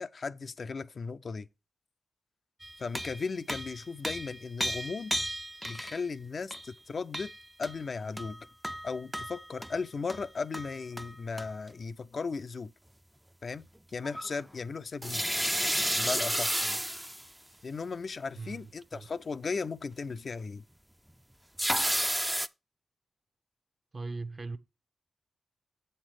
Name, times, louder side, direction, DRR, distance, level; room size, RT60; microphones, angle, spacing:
voice 1, 0.0-1.5 2.8-5.1 5.7-7.3 7.6-8.5 8.8-12.7 13.4-13.7 13.9-15.2 16.0-16.8 17.6-20.6, left 4 dB, 60° left, 0.4 m, -36 dB
sound 1, 2.6-6.0 6.5-6.7 7.1-7.8 8.2-9.8 10.1-10.2 10.5-11.1 11.4-11.5 14.0-14.3 15.0-17.2 21.6-22.5, equal, 10° right, 0.4 m, -32 dB
voice 2, 18.3-19.1 23.9-24.6, right 3 dB, 50° right, 0.7 m, -40 dB
7.3 x 4.4 x 4.7 m
supercardioid pair, 40°, 0 cm